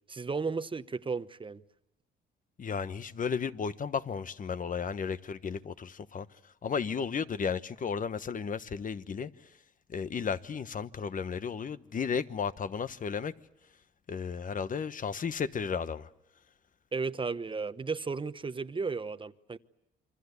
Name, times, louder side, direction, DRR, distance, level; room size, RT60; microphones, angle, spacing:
voice 1, 0.1-1.6 16.9-19.6, right 4 dB, 25° right, 1.0 m, -34 dB
voice 2, 2.6-6.3 6.6-9.3 9.9-13.3 14.1-16.1, left 6 dB, 40° left, 1.2 m, -34 dB
27.5 x 25.5 x 8.3 m
cardioid pair, 90°, 20 cm